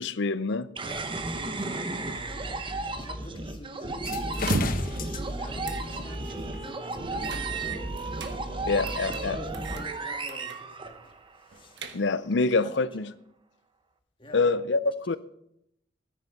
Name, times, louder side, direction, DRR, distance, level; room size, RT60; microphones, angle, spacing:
voice 1, 0.0-0.7 8.7-9.4 11.9-13.1 14.3-15.2, left 3 dB, 65° left, 15 dB, 0.6 m, -26 dB
voice 2, 0.8-8.0 9.1-12.0 12.6-12.9 14.2-14.5, equal, 25° left, 4 dB, 1.7 m, -46 dB
sound 1, 0.8-11.4, right 2 dB, 25° right, 0.9 m, -34 dB
sound 2, 3.9-9.2, left 4 dB, 45° left, 1.0 m, -39 dB
sound 3, 4.3-4.9 5.6-5.9 6.3-6.4 7.2-8.3 8.9-9.2 9.5-9.9 10.3-10.6 10.9-11.0 11.5-12.3, right 3 dB, 65° right, 1.2 m, -33 dB
14.5 x 10.0 x 5.3 m, 0.78 s
head